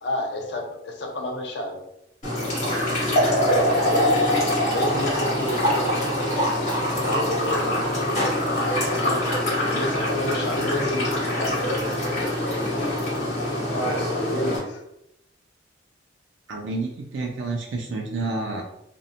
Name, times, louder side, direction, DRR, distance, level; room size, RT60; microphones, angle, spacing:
voice 1, 0.0-1.8 2.6-3.0 3.8-6.1 6.9-8.3 8.7-9.2 9.6-11.9 12.7-12.9 13.7-14.8, left 1 dB, 60° left, 2 dB, 0.5 m, -31 dB
sound 1, 2.2-14.6, left 1 dB, 40° left, 1.2 m, -24 dB
voice 2, 16.5-18.6, right 3 dB, 75° right, 0 dB, 0.4 m, -29 dB
2.5 x 2.0 x 2.7 m, 0.82 s
head